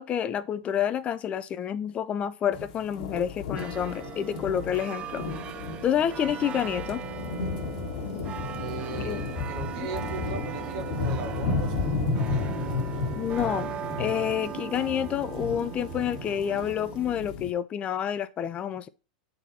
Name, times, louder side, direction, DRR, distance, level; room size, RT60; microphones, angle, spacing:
voice 1, 0.0-5.2 5.8-7.0 9.0-9.2 9.8-9.9 13.2-13.7 14.0-18.9, left 9 dB, 30° left, 0.5 m, -28 dB
sound 1, 2.5-17.5, left 4 dB, 60° left, 1.3 m, -33 dB
sound 2, 3.6-17.2, right 9 dB, 25° right, 0.3 m, -40 dB
sound 3, 8.4-16.7, right 7 dB, 80° right, 1.2 m, -43 dB
voice 2, 8.6-12.8, right 6 dB, 55° right, 1.6 m, -39 dB
8.9 x 4.1 x 4.1 m
hypercardioid pair, 115°, 4 cm